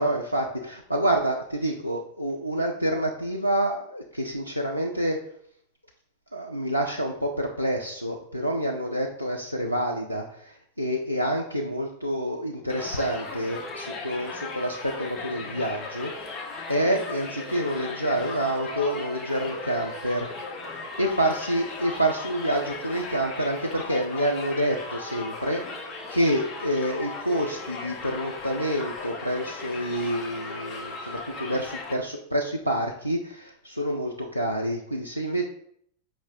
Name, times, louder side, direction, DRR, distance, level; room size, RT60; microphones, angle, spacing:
voice 1, 0.0-5.2 6.3-20.3 21.0-25.6 26.1-35.4, right 1 dB, 90° left, 0 dB, 0.3 m, -28 dB
Crowd, 12.7-31.9, left 3 dB, 25° left, 0.8 m, -37 dB
5.0 x 2.0 x 3.8 m, 0.65 s
figure-of-eight pair, 90°, 0 cm